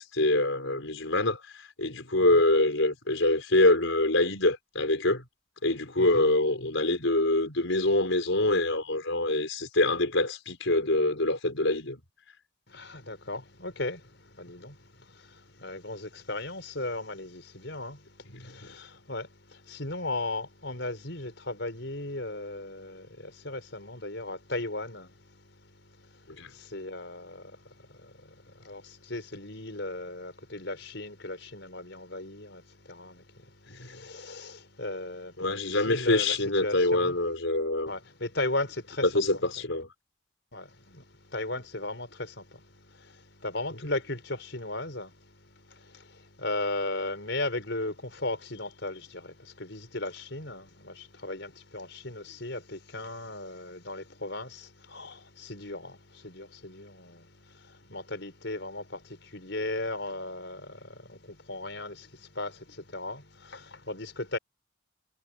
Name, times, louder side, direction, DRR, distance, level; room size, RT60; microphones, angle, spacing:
voice 1, 0.0-5.2 5.6-12.0 18.3-18.7 26.4-26.5 33.7-34.0 35.4-37.9 39.0-39.9, left 2 dB, 80° left, 5.0 m, -25 dB
voice 2, 12.7-37.2 37.9-39.2 40.5-64.4, left 2 dB, 65° left, 5.4 m, -37 dB
head